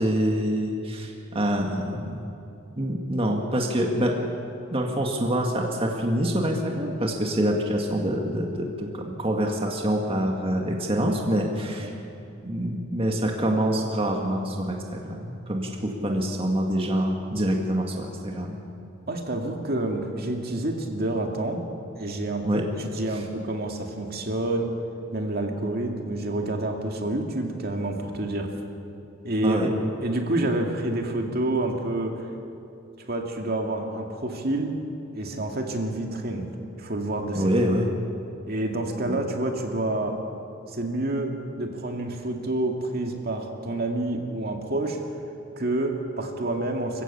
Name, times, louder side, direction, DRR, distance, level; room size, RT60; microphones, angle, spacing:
voice 1, 0.0-2.2 2.8-4.3 4.7-11.9 12.4-18.6 22.5-22.7 23.1-23.2 29.4-29.7 37.4-37.9 39.1-39.2, equal, 30° right, 1 dB, 1.9 m, -26 dB
voice 2, 19.1-21.6 21.9-22.5 22.8-24.7 25.1-28.5 29.2-29.6 30.0-32.1 33.1-34.7 35.1-36.5 36.8-37.4 38.5-40.2 40.7-45.0 45.6-47.0, right 2 dB, 50° right, 2 dB, 2.2 m, -28 dB
26.0 x 15.0 x 8.5 m, 2.8 s
head